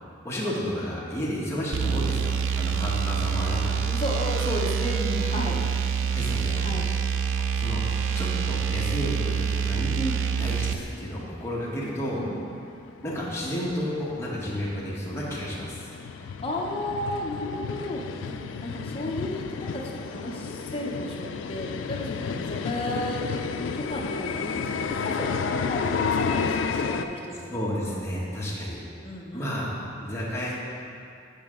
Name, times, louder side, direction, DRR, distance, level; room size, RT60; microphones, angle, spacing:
voice 1, 0.2-3.8 6.1-6.5 7.4-7.8 8.1-10.0 10.4-12.2 13.0-15.9 27.3-28.8 29.3-29.7 30.0-30.5, equal, 15° left, -6 dB, 1.2 m, -31 dB
sound 1, 1.7-10.8, right 6 dB, 85° right, 0.3 m, -26 dB
voice 2, 3.9-5.6 6.6-6.9 9.9-10.2 12.2-12.5 16.0-23.2 23.7-27.5 28.5-28.6 29.0-29.5, left 1 dB, 30° left, -2 dB, 0.8 m, -33 dB
sound 2, 8.2-10.3 10.6-10.7 11.2-11.3 11.6-11.7 12.0-27.1, left 5 dB, 75° left, 0.3 m, -32 dB
8.5 x 4.8 x 3.7 m, 2.5 s
head